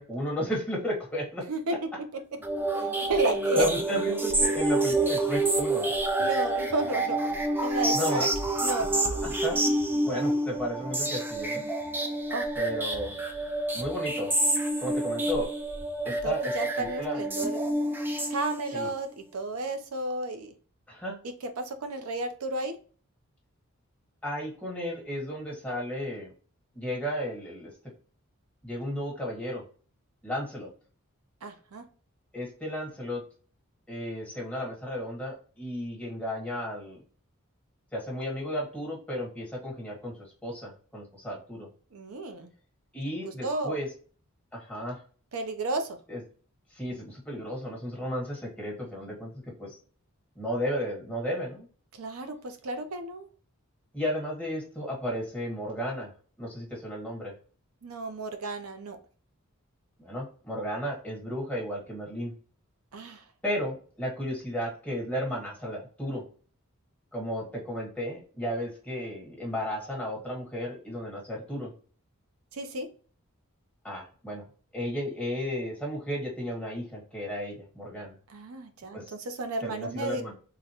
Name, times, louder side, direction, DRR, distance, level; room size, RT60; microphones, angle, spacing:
voice 1, 0.0-1.4 3.5-5.9 7.9-8.2 9.2-9.6 10.0-11.7 12.6-13.2 13.7-14.3 14.8-15.5 16.0-17.2 18.7-18.9 20.9-21.2 24.2-26.3 26.7-27.7 28.6-29.6 30.2-30.7 32.3-33.2 33.9-37.0 37.9-40.1 40.4-41.7 42.9-43.9 44.5-45.0 46.1-46.2 46.7-49.3 49.6-49.8 50.3-51.7 53.9-56.1 56.4-57.3 60.0-62.3 63.4-66.2 67.1-71.7 73.8-74.4 74.7-78.2 78.9-79.1 79.6-80.3, equal, 5° left, -3 dB, 1.4 m, -33 dB
sound 1, 2.4-18.9, right 2 dB, 10° right, 0.4 m, -28 dB
voice 2, 2.7-3.7 6.2-7.2 7.6-8.3 8.6-9.2 12.3-12.5 16.1-17.6 18.3-20.5 21.6-22.7 31.4-31.8 41.9-42.5 43.2-43.8 45.3-46.0 51.9-53.3 57.8-59.0 62.9-63.2 72.5-72.9 78.3-80.2, right 2 dB, 80° right, 7 dB, 0.5 m, -32 dB
3.8 x 2.2 x 2.8 m, 0.40 s
head